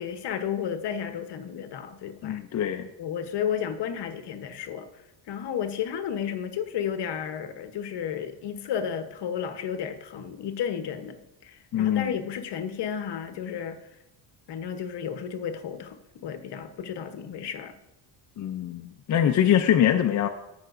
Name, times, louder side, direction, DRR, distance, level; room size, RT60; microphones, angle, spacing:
voice 1, 0.0-2.4 3.0-4.9 5.3-13.8 14.5-17.7, left 8 dB, 55° left, 9 dB, 0.9 m, -32 dB
voice 2, 2.2-2.9 11.7-12.1 18.4-20.3, left 10 dB, 40° left, 5 dB, 0.4 m, -23 dB
15.5 x 5.8 x 2.5 m, 0.91 s
cardioid pair, 120°, 49 cm